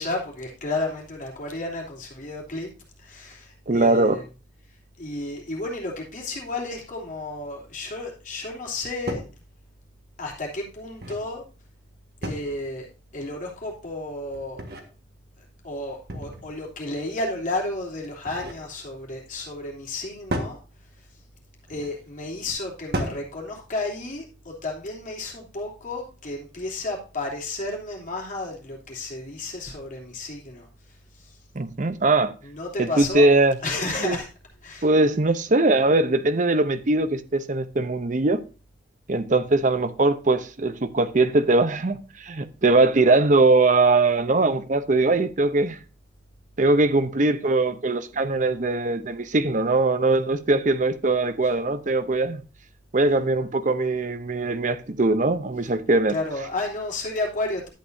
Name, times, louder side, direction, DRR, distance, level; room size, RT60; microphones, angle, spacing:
voice 1, 0.0-2.7 3.0-4.2 5.0-9.2 10.2-11.4 12.2-12.9 13.1-14.6 15.4-20.6 21.7-30.7 31.1-31.4 32.4-33.3 33.6-34.3 34.6-34.9 56.1-57.7, left 2 dB, 45° left, 3.1 m, -32 dB
voice 2, 3.7-4.2 31.5-32.3 32.8-33.6 34.0-34.2 34.8-38.4 39.1-45.8 46.6-52.4 52.9-56.1, right 2 dB, 45° right, 0.7 m, -21 dB
sound 1, 9.1-9.4 10.7-11.3 12.2-12.7 14.3-14.9 16.1-16.6 18.0-18.7 20.3-20.6 21.7-22.0 22.9-23.3, right 1 dB, 60° right, 1.6 m, -33 dB
11.5 x 8.4 x 2.7 m
head